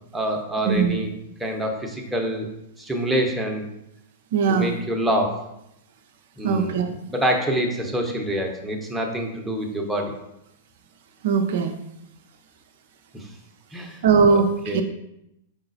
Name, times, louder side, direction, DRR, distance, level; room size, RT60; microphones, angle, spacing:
voice 1, 0.1-1.1 1.4-2.5 2.8-3.7 4.5-5.4 6.4-10.1 13.1-13.2 13.7-14.0 14.3-14.8, right 1 dB, 5° right, 1 dB, 0.8 m, -26 dB
voice 2, 4.3-4.7 6.4-6.9 11.2-11.7 14.0-14.8, right 5 dB, 60° right, 5 dB, 0.4 m, -20 dB
4.9 x 3.8 x 2.6 m, 0.84 s
figure-of-eight pair, 100°, 0 cm